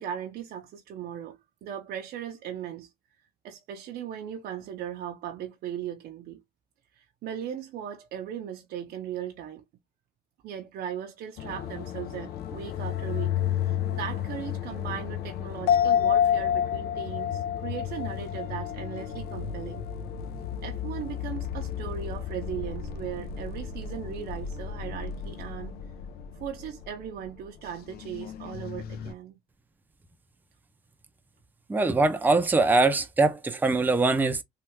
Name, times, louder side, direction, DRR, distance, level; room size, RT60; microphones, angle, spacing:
voice 1, 0.0-2.9 3.4-6.4 6.9-9.6 10.4-19.8 20.6-25.8 26.4-29.4, right 9 dB, 65° right, 0.6 m, -38 dB
sound 1, 11.4-29.1, left 9 dB, 70° left, 0.5 m, -35 dB
sound 2, 15.7-19.4 19.7-19.8, left 9 dB, 85° left, 1.2 m, -26 dB
voice 2, 31.7-34.4, right 3 dB, 10° right, 0.5 m, -22 dB
3.2 x 2.3 x 2.9 m
cardioid pair, 110°, 17 cm